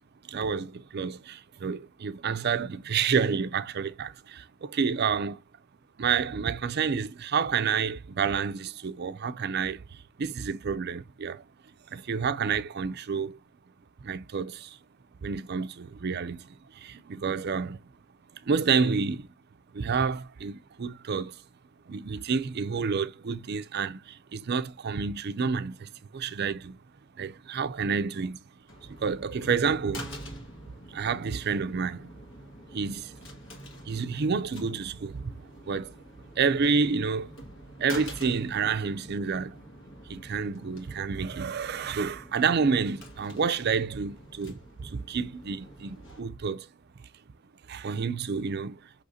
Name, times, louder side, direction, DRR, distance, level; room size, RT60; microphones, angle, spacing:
voice 1, 0.2-5.4 6.0-11.4 11.9-13.4 14.0-14.8 15.2-16.5 16.7-17.8 18.4-19.3 19.7-21.4 21.9-26.8 27.2-28.4 28.8-30.1 30.9-32.1 32.7-33.1 33.9-35.3 35.7-36.0 36.4-37.3 37.8-39.6 40.1-46.7 47.7-48.8, right 5 dB, 50° right, 0.5 m, -29 dB
sound 1, 28.7-46.2, equal, 65° left, 1.8 m, -46 dB
6.3 x 3.1 x 2.6 m
head